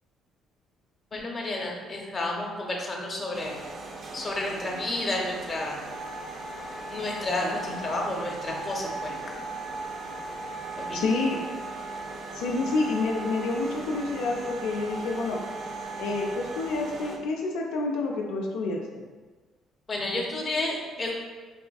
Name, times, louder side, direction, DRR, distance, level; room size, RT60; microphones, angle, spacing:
voice 1, 1.1-3.6 4.1-5.8 6.9-9.2 10.8-11.0 19.9-21.1, left 2 dB, 30° left, -1 dB, 0.7 m, -31 dB
sound 1, 3.3-17.2, right 3 dB, 50° right, 0.4 m, -41 dB
Wind instrument woodwind instrument, 5.9-16.7, right 3 dB, 70° right, 0.7 m, -39 dB
voice 2, 10.9-11.4 12.3-15.4 16.0-19.0, left 3 dB, 90° left, -1 dB, 0.4 m, -28 dB
4.1 x 2.4 x 2.3 m, 1.4 s
cardioid pair, 95°, 0 cm